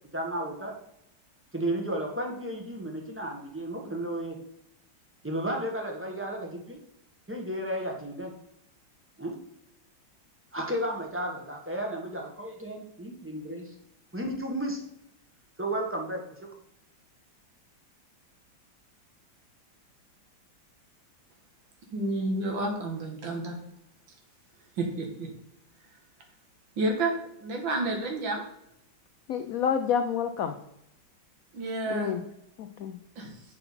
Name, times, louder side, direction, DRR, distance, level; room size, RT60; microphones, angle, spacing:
voice 1, 0.1-0.7 1.5-4.4 5.2-6.8 7.3-8.3 9.2-9.4 10.5-13.7 14.1-14.8 15.6-16.5, right 1 dB, 10° right, 0 dB, 0.9 m, -33 dB
voice 2, 21.9-23.6 24.8-25.3 26.8-27.1 27.4-28.4 31.5-32.2 33.2-33.4, right 2 dB, 75° right, 2 dB, 2.2 m, -30 dB
voice 3, 29.3-30.6 31.9-32.2 32.6-33.0, left 7 dB, 85° left, 7 dB, 0.7 m, -28 dB
7.9 x 5.7 x 4.1 m, 0.78 s
omnidirectional pair, 2.1 m